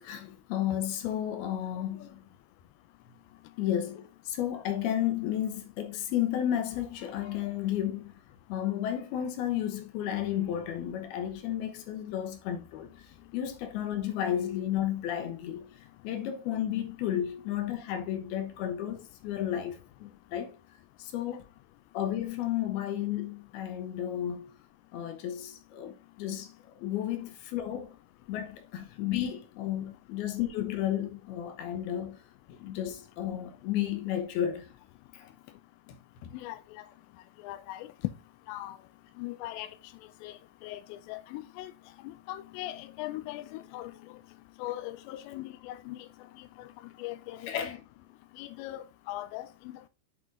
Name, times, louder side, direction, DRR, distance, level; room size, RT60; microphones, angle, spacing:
voice 1, 0.0-2.2 3.6-8.2 8.5-12.9 13.3-15.8 16.0-20.6 21.0-21.4 21.9-24.5 24.9-26.5 26.8-27.9 28.3-32.2 32.5-34.7 35.1-35.3 35.9-36.0 36.2-36.3 47.5-47.8, left 11 dB, 75° left, 2.8 m, -32 dB
voice 2, 36.3-36.9 37.4-37.9 38.5-38.8 39.2-39.7 40.2-41.7 42.0-43.9 44.6-46.0 47.0-47.8 48.4-49.9, left 15 dB, 90° left, 2.8 m, -40 dB
8.4 x 4.5 x 3.7 m
omnidirectional pair, 5.0 m